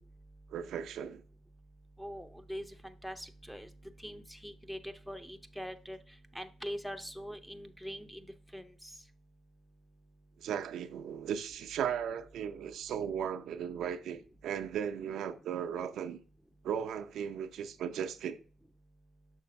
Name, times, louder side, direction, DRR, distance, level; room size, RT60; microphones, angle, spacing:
voice 1, 0.5-1.2 10.4-16.2 16.6-18.4, right 8 dB, 75° right, 0.6 m, -36 dB
voice 2, 2.0-3.7 4.0-6.0 6.3-8.2 8.5-8.9, equal, ahead, 0.7 m, -43 dB
6.4 x 3.2 x 5.7 m
cardioid pair, 90°, 0 cm